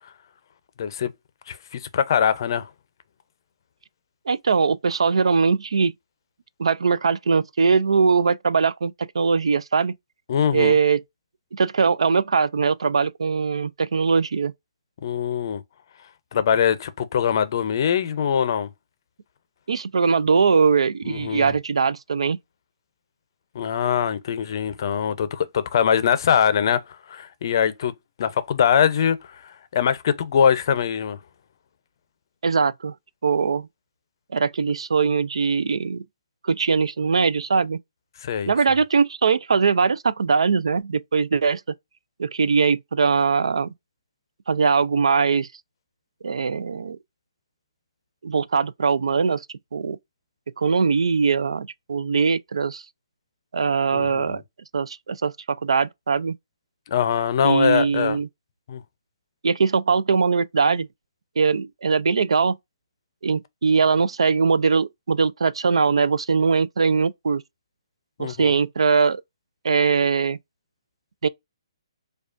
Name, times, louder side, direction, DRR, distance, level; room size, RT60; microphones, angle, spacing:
voice 1, 0.8-1.1 1.5-2.7 10.3-10.8 15.0-15.6 16.3-18.7 21.0-21.5 23.5-26.8 27.1-27.9 28.2-31.2 38.2-38.5 53.9-54.4 56.9-58.2 58.7-58.8 68.2-68.5, left 8 dB, 45° left, 0.5 m, -22 dB
voice 2, 4.3-5.9 6.6-9.9 10.5-11.0 11.5-14.5 19.7-22.4 32.4-32.9 33.2-33.7 34.3-36.0 36.4-37.8 38.5-41.6 42.2-43.7 44.5-45.5 46.2-47.0 48.2-49.5 49.7-50.0 50.6-52.8 53.5-54.4 54.7-56.4 57.4-58.3 59.4-60.9 61.4-62.6 63.2-67.4 68.2-69.2 69.6-70.4 71.2-71.3, right 5 dB, 85° right, 0.3 m, -21 dB
4.8 x 2.3 x 2.4 m
hypercardioid pair, 160°, 3 cm